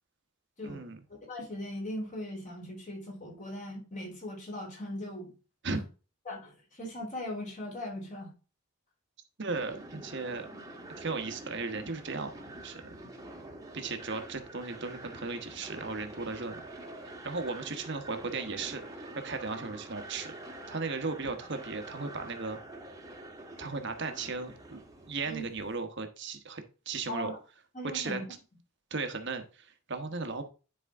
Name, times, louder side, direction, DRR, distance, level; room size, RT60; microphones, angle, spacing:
voice 1, 0.6-1.0 5.6-5.8 9.4-10.5 11.0-12.8 13.7-16.6 17.0-20.3 20.7-22.6 23.6-24.8 25.1-27.3 27.9-28.2 28.9-30.5, right 4 dB, 55° right, 1.2 m, -36 dB
voice 2, 1.3-5.3 5.7-5.8 6.3-8.3 25.3-25.5 27.1-27.4 27.7-28.2, left 1 dB, 35° left, 3.7 m, -39 dB
sound 1, 9.5-25.8, right 2 dB, 15° right, 1.4 m, -46 dB
10.5 x 4.8 x 3.6 m
head